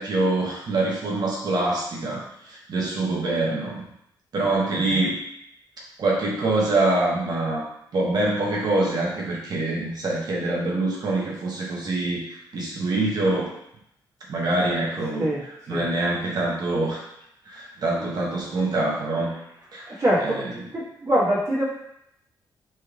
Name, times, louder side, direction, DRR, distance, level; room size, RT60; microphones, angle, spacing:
voice 1, 0.0-2.2 2.7-3.8 4.3-5.2 6.0-7.6 7.9-13.5 14.3-15.3 15.7-17.0 17.5-19.3 19.7-20.5, right 2 dB, 55° right, -3 dB, 0.9 m, -25 dB
voice 2, 4.7-5.0 15.2-15.8 18.0-18.1 19.9-20.5 20.7-21.6, right 1 dB, 40° right, -10 dB, 1.4 m, -24 dB
4.3 x 3.3 x 2.4 m, 0.76 s
cardioid pair, 110°, 8 cm